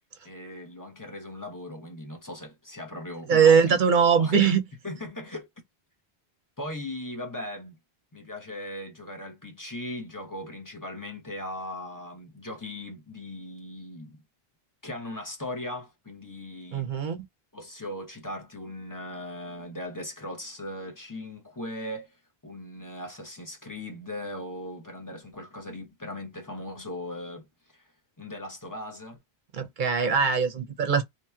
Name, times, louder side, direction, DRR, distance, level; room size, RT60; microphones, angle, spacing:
voice 1, 0.2-3.8 4.1-4.4 4.8-5.5 6.6-7.8 8.1-14.2 14.8-16.9 17.5-22.2 22.4-27.5 27.7-27.8 28.2-29.2, left 1 dB, 20° left, 0.8 m, -38 dB
voice 2, 3.3-4.6 16.7-17.3 29.5-31.0, right 6 dB, 55° right, 0.7 m, -21 dB
2.9 x 2.8 x 2.2 m
omnidirectional pair, 1.0 m